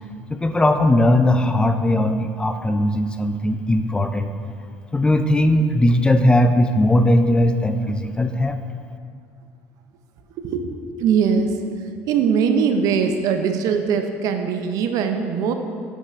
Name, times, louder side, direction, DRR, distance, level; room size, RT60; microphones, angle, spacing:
voice 1, 0.3-4.3 4.9-8.6, left 1 dB, 15° left, 8 dB, 0.4 m, -18 dB
voice 2, 10.4-10.7 11.0-11.6 12.1-15.5, right 6 dB, 70° right, 6 dB, 0.5 m, -21 dB
8.3 x 5.5 x 2.5 m, 2.2 s
supercardioid pair, 85°, 6 cm